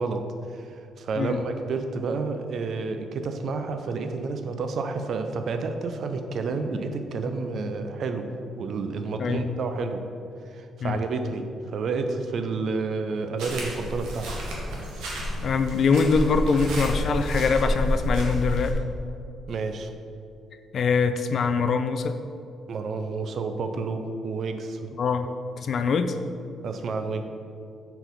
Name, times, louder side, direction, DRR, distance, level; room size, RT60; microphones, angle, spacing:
voice 1, 0.0-8.3 8.6-10.0 10.4-14.3 19.5-19.9 22.7-24.9 26.6-27.2, right 4 dB, 60° right, 7 dB, 0.5 m, -30 dB
voice 2, 9.2-9.6 10.8-11.0 15.0-18.8 20.7-22.2 25.0-25.3 25.6-26.2, left 5 dB, 55° left, 8 dB, 0.3 m, -24 dB
sound 1, 13.4-18.7, equal, 85° right, 1.1 m, -29 dB
4.5 x 4.0 x 5.2 m, 2.5 s
cardioid pair, 90°, 0 cm